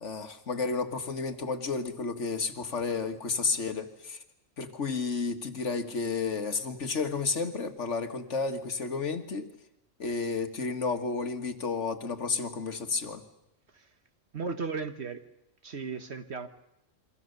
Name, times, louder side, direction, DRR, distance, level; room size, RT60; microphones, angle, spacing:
voice 1, 0.0-4.2 4.6-9.5 10.0-13.2, left 4 dB, 65° left, 8 dB, 1.9 m, -32 dB
voice 2, 14.3-15.2 15.6-16.5, right 4 dB, 60° right, 9 dB, 1.7 m, -35 dB
29.0 x 23.5 x 6.7 m, 0.81 s
omnidirectional pair, 1.3 m